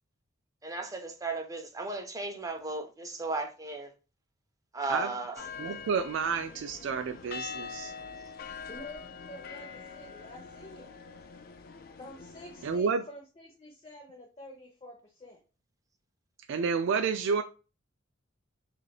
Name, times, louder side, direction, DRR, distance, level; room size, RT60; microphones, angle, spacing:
voice 1, 0.6-3.9 4.7-5.4, right 2 dB, 15° right, 0.6 m, -35 dB
sound 1, 5.4-12.8, left 5 dB, 50° left, 0.4 m, -44 dB
voice 2, 5.6-7.9 12.6-13.0 16.5-17.4, right 5 dB, 65° right, 0.3 m, -30 dB
voice 3, 8.7-10.9 12.0-15.4, left 1 dB, 30° left, 0.8 m, -48 dB
4.8 x 2.5 x 2.3 m
head